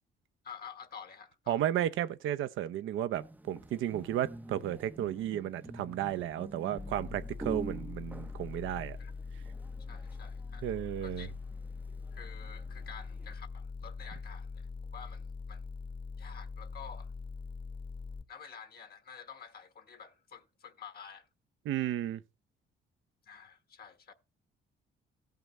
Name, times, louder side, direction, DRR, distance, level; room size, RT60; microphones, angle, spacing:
voice 1, 0.4-1.6 9.0-9.1 9.9-10.7 11.0-11.3 12.1-14.7 14.9-15.7 16.2-17.1 18.3-21.3 23.3-24.1, left 7 dB, 50° left, 1.3 m, -49 dB
voice 2, 1.5-9.0 10.6-11.3 21.6-22.2, right 11 dB, 80° right, 0.7 m, -33 dB
sound 1, 3.1-13.3, right 2 dB, 10° right, 0.5 m, -48 dB
sound 2, 6.8-18.2, left 4 dB, 25° left, 1.0 m, -43 dB
16.5 x 5.7 x 3.1 m
cardioid pair, 90°, 20 cm